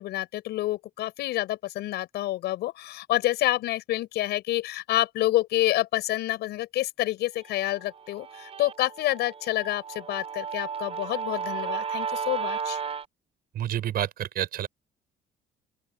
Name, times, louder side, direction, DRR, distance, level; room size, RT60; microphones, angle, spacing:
voice 1, 0.0-12.8, left 15 dB, 80° left, 7.7 m, -28 dB
Guitar, 7.5-13.1, right 6 dB, 35° right, 4.5 m, -34 dB
voice 2, 13.5-14.7, right 11 dB, 65° right, 5.9 m, -29 dB
open air
cardioid pair, 110°, 17 cm